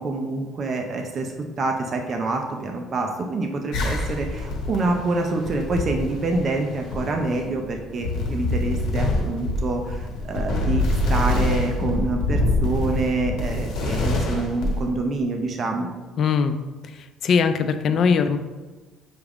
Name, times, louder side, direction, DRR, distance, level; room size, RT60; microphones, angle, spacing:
voice 1, 0.0-15.9, right 3 dB, 35° right, 2 dB, 0.4 m, -26 dB
sound 1, 3.7-14.9, left 2 dB, 65° left, 1.1 m, -25 dB
voice 2, 16.2-16.6 16.8-18.4, left 6 dB, 45° left, 9 dB, 0.3 m, -21 dB
6.0 x 2.3 x 3.4 m, 1.2 s
cardioid pair, 150°, 0 cm